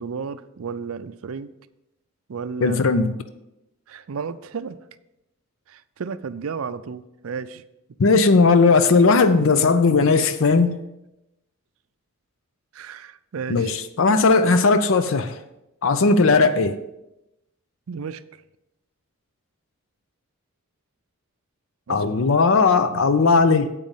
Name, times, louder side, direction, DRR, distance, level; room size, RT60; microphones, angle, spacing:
voice 1, 0.0-1.5 2.3-2.8 3.9-4.8 5.7-7.6 12.7-13.7 17.9-18.2 21.9-22.0 22.3-22.4, right 5 dB, 75° right, 13 dB, 0.5 m, -33 dB
voice 2, 2.6-3.1 8.0-10.8 13.5-15.4 15.8-16.8 21.9-23.7, left 4 dB, 65° left, 11 dB, 0.5 m, -17 dB
8.3 x 5.3 x 7.2 m, 0.91 s
head